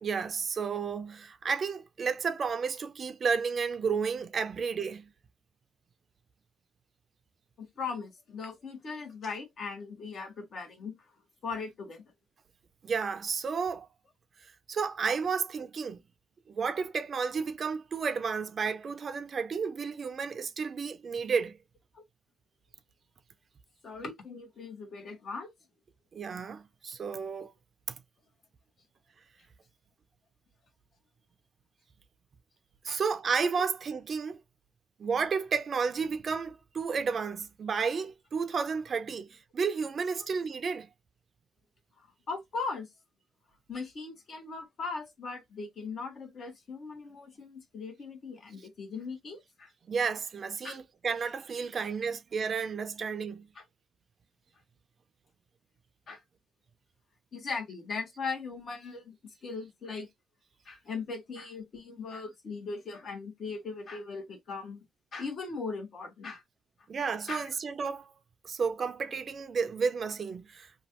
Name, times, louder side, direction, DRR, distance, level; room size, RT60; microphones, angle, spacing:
voice 1, 0.0-5.0 12.8-13.9 14.7-16.0 16.5-21.6 26.1-27.5 32.8-34.4 35.0-40.9 49.9-53.4 66.9-68.1 68.4-70.9, right 5 dB, 45° right, 0.5 m, -32 dB
voice 2, 7.6-10.9 11.4-12.0 21.9-22.0 23.8-25.5 32.9-33.0 42.0-42.9 43.7-49.7 50.6-50.8 53.5-53.6 56.1-56.2 57.3-59.1 59.4-60.1 60.6-64.8 65.1-66.4 67.3-67.5, left 4 dB, 55° left, 1.3 m, -39 dB
3.0 x 2.4 x 2.9 m
cardioid pair, 90°, 0 cm